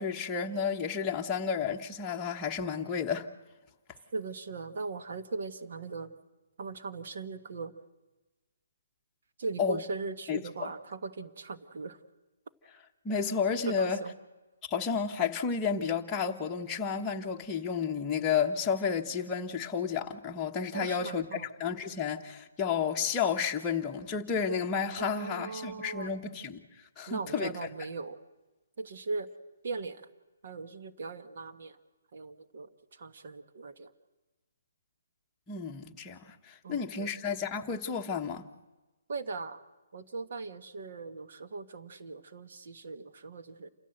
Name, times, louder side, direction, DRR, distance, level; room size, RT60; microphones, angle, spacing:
voice 1, 0.0-3.3 9.6-9.8 10.3-10.7 13.0-14.0 14.6-26.6 27.0-27.7 35.5-38.4, left 6 dB, 15° left, 1.2 m, -31 dB
voice 2, 4.1-6.1 6.6-7.7 9.4-12.0 13.7-14.1 20.7-21.5 25.0-26.1 27.1-28.2 28.8-29.3 29.6-30.0 30.4-31.8 32.1-32.7 33.0-33.9 36.6-37.1 39.1-39.6 39.9-43.7, right 3 dB, 55° right, 1.4 m, -39 dB
28.0 x 14.5 x 7.9 m
hypercardioid pair, 170°, 0 cm